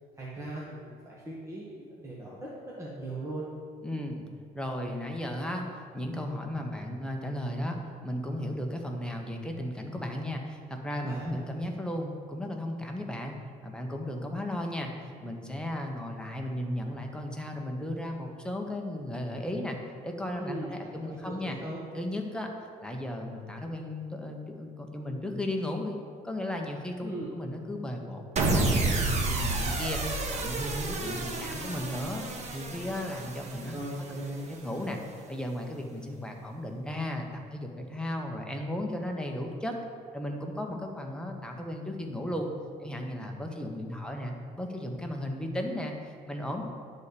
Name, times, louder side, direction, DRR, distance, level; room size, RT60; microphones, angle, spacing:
voice 1, 0.2-3.5 11.0-11.3 20.4-21.8 27.0-27.3 33.7-34.5, right 1 dB, 15° right, -7 dB, 1.6 m, -39 dB
voice 2, 3.8-4.3 4.5-13.3 13.6-14.9 15.2-19.8 20.0-21.5 21.9-22.5 22.8-32.2 32.5-33.8 34.5-35.0 35.3-39.7 40.1-42.5 42.8-46.6, left 1 dB, 5° left, 2 dB, 1.1 m, -35 dB
sound 1, 28.4-34.7, right 2 dB, 40° right, 1.3 m, -30 dB
10.0 x 4.4 x 6.9 m, 2.1 s
cardioid pair, 110°, 17 cm